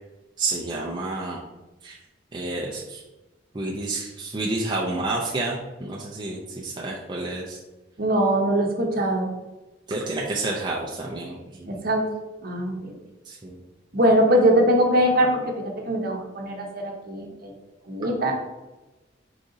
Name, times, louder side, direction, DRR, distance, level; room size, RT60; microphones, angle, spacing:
voice 1, 0.4-1.4 1.8-2.0 2.3-3.0 3.5-7.6 9.9-11.7 13.2-13.6, right 2 dB, 25° right, -3 dB, 0.4 m, -29 dB
voice 2, 8.0-9.3 11.7-12.0 12.4-12.7 13.9-17.3 17.9-18.3, equal, 50° right, 1 dB, 0.8 m, -21 dB
4.8 x 2.6 x 3.8 m, 1.1 s
head